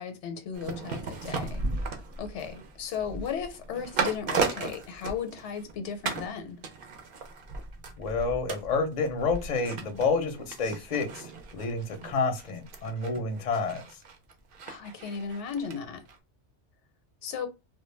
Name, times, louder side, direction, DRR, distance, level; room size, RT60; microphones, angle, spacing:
voice 1, 0.0-1.6 2.2-6.6 14.7-16.0 17.2-17.5, left 7 dB, 80° left, 0.9 m, -35 dB
sound 1, 0.5-5.7 6.0-6.3 6.6-15.8 16.1-16.2, right 4 dB, 60° right, 0.7 m, -36 dB
voice 2, 8.0-13.8, left 4 dB, 50° left, 0.6 m, -29 dB
2.2 x 2.1 x 3.1 m
omnidirectional pair, 1.2 m